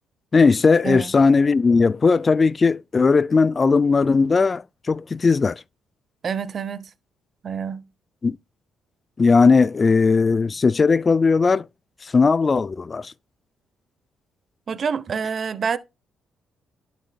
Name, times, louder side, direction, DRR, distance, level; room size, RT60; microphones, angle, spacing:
voice 1, 0.3-5.6 8.2-8.4 9.2-11.7 12.1-13.1, left 4 dB, 30° left, 0.4 m, -18 dB
voice 2, 6.2-6.9 7.4-7.9 14.7-15.8, right 6 dB, 50° right, 0.8 m, -27 dB
11.5 x 6.2 x 2.3 m
cardioid pair, 90°, 0 cm